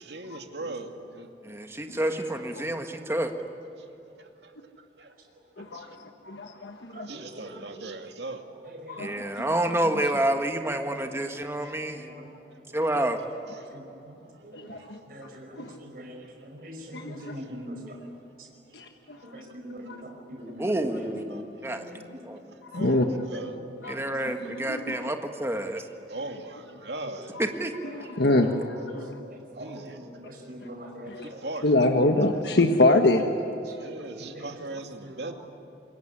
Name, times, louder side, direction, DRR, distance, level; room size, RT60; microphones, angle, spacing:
voice 1, 0.0-1.3 3.8-3.9 4.2-5.1 5.7-6.0 7.0-8.4 11.6-11.7 13.5-13.8 14.4-14.5 14.7-14.9 15.3-15.4 16.6-16.7 17.2-17.6 18.7-18.9 21.3-21.8 22.5-23.6 26.1-27.3 29.6-30.2 31.2-31.7 33.6-35.3, right 2 dB, 75° right, 5 dB, 2.3 m, -40 dB
voice 2, 1.4-3.3 5.7-5.8 9.0-12.1 12.7-13.2 20.6-21.8 22.2-22.4 23.9-25.9 27.4-27.7 28.2-28.3, right 1 dB, 15° right, 5 dB, 1.6 m, -28 dB
voice 3, 5.6-7.1 8.9-9.1 14.5-15.0 15.6-15.7 16.9-17.4 18.7-19.2 19.9-20.0 22.7-23.0 23.8-23.9 24.5-25.1 27.4-27.5 27.9-29.1 31.1-31.3 31.6-33.2, left 2 dB, 70° left, 4 dB, 1.4 m, -25 dB
voice 4, 6.9-7.8 8.6-9.1 11.0-11.1 11.9-12.1 13.7-13.8 14.4-14.6 15.1-15.5 15.8-16.2 16.6-17.8 19.3-20.7 21.7-22.0 23.1-23.8 28.4-28.9 29.6-31.4 34.4-34.5 35.0-35.3, equal, 55° right, 2 dB, 5.5 m, -42 dB
26.0 x 22.0 x 9.9 m, 2.9 s
head